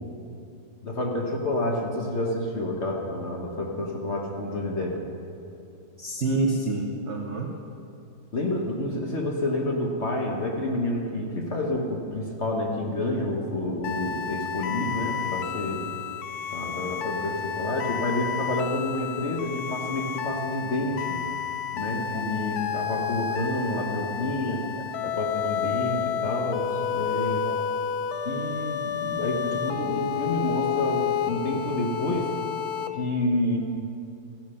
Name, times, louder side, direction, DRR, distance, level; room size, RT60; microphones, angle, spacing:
voice 1, 0.8-5.1 8.3-15.8 16.5-21.2 21.7-24.6 25.0-27.4 28.2-32.3 32.9-33.6, left 1 dB, 40° left, 0 dB, 1.1 m, -29 dB
voice 2, 6.0-7.6 22.1-22.6 24.0-24.1 24.5-24.9 25.9-26.1 27.4-27.7, right 2 dB, 65° right, 2 dB, 0.6 m, -29 dB
sound 1, 13.8-32.9, left 8 dB, 90° left, 0.8 m, -30 dB
14.0 x 10.5 x 5.7 m, 2.6 s
omnidirectional pair, 2.4 m